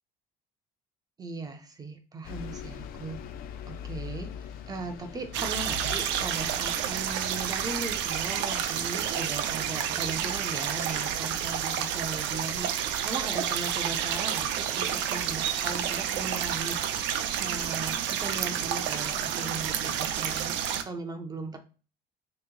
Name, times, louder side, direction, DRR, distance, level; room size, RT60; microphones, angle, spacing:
voice 1, 1.2-3.3 3.7-4.3 4.7-16.8 17.4-20.6 20.8-21.6, right 3 dB, 20° right, 6 dB, 0.4 m, -38 dB
Bus, 2.2-8.0, left 7 dB, 50° left, 0.4 m, -41 dB
sound 1, 5.3-20.8, right 9 dB, 70° right, 0.5 m, -30 dB
3.0 x 2.8 x 3.7 m, 0.36 s
cardioid pair, 160°, 19 cm